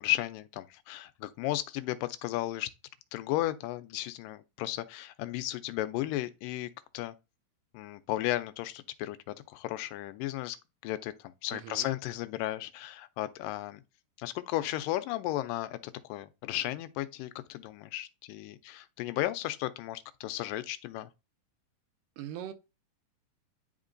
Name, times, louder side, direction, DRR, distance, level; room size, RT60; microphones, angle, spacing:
voice 1, 0.0-2.7 3.1-7.1 7.7-10.6 10.8-13.8 14.2-21.1, left 15 dB, 85° left, 2.2 m, -34 dB
voice 2, 11.5-11.9 22.2-22.5, right 10 dB, 90° right, 2.3 m, -40 dB
10.5 x 3.6 x 2.6 m
omnidirectional pair, 3.9 m